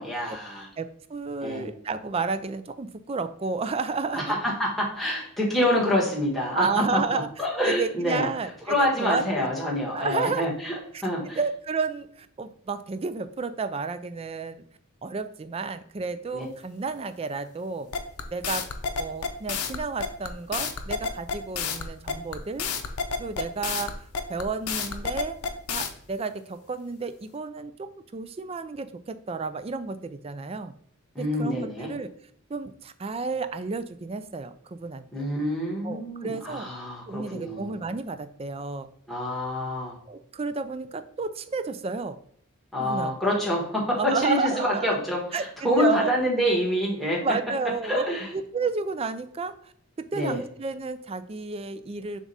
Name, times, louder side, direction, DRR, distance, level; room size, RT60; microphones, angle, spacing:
voice 1, 0.0-0.7 1.4-1.7 4.1-6.8 7.1-8.3 8.7-10.7 11.0-11.4 16.3-16.5 31.1-31.9 35.1-37.8 39.1-40.0 42.7-47.2 47.8-48.3 50.1-50.4, left 1 dB, ahead, -3 dB, 1.3 m, -26 dB
voice 2, 0.8-4.2 6.5-7.3 7.6-9.5 9.9-10.5 10.9-11.1 11.4-14.6 15.0-17.9 18.3-18.7 19.0-22.7 23.2-25.4 25.7-30.7 31.2-32.1 32.5-35.2 35.8-36.7 37.1-38.9 40.1-42.2 42.8-43.1 44.0-45.0 45.3-45.4 45.8-46.1 47.2-48.1 48.3-49.7 50.1-52.2, right 4 dB, 25° right, 11 dB, 0.3 m, -31 dB
sound 1, 17.9-25.9, left 5 dB, 85° left, 0.7 m, -30 dB
7.1 x 2.5 x 5.4 m, 0.67 s
head